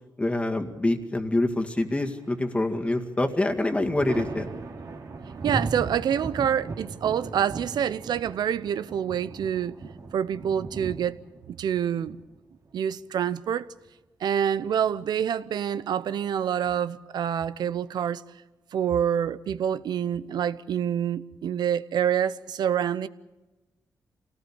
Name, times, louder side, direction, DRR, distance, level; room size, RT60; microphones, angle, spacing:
voice 1, 0.2-4.5, left 2 dB, 15° left, 2.1 m, -26 dB
Thunder, 2.2-2.9 3.3-12.9 14.4-15.2, right 3 dB, 60° right, 2.7 m, -38 dB
voice 2, 5.4-9.8 10.1-12.2 12.7-13.7 14.2-18.2 18.7-23.1, right 9 dB, 80° right, 0.8 m, -27 dB
26.0 x 18.0 x 8.8 m
cardioid pair, 90°, 7 cm